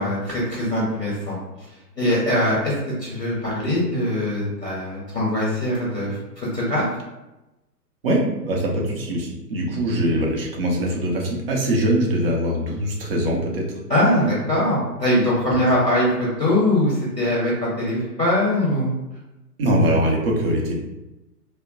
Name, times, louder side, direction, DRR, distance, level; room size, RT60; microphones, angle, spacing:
voice 1, 0.0-1.7 2.0-2.7 3.0-6.8 13.9-18.9, left 1 dB, 5° right, -17 dB, 0.4 m, -22 dB
voice 2, 8.0-13.7 19.6-20.7, right 1 dB, 35° right, -1 dB, 0.7 m, -22 dB
2.7 x 2.1 x 3.8 m, 1.0 s
hypercardioid pair, 130°, 49 cm